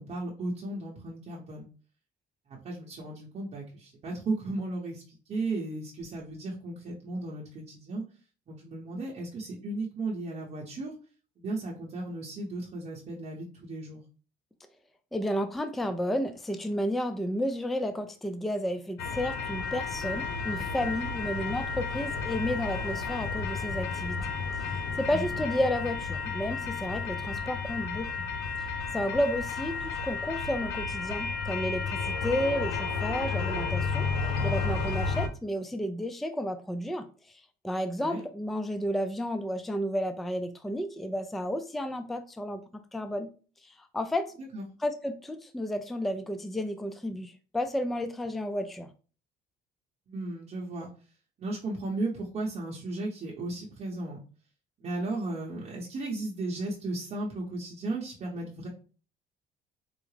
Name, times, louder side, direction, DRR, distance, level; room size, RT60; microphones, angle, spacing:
voice 1, 0.0-1.7 2.6-5.0 5.3-8.0 8.5-10.9 11.4-14.0 25.1-25.2 38.0-38.2 44.5-44.6 50.1-50.9 51.4-54.2 54.8-58.7, right 2 dB, 45° right, -3 dB, 0.8 m, -35 dB
voice 2, 15.1-24.2 25.0-28.1 28.9-37.1 37.6-43.3 43.6-44.3 44.8-48.9, equal, ahead, 9 dB, 0.3 m, -32 dB
sound 1, 19.0-35.3, left 4 dB, 80° left, 0.6 m, -32 dB
4.6 x 2.0 x 3.2 m, 0.38 s
cardioid pair, 110°, 17 cm